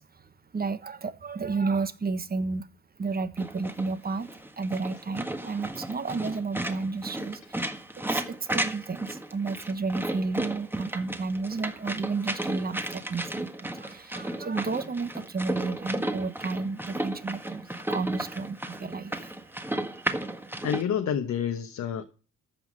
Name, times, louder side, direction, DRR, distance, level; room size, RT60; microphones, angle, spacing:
voice 1, 0.0-2.7 3.0-4.3 4.6-20.1, right 4 dB, 30° right, 1.3 m, -32 dB
sound 1, 3.4-20.8, right 1 dB, 5° right, 1.5 m, -34 dB
voice 2, 20.6-22.0, left 8 dB, 65° left, 1.3 m, -28 dB
14.0 x 5.8 x 6.4 m
cardioid pair, 90°, 30 cm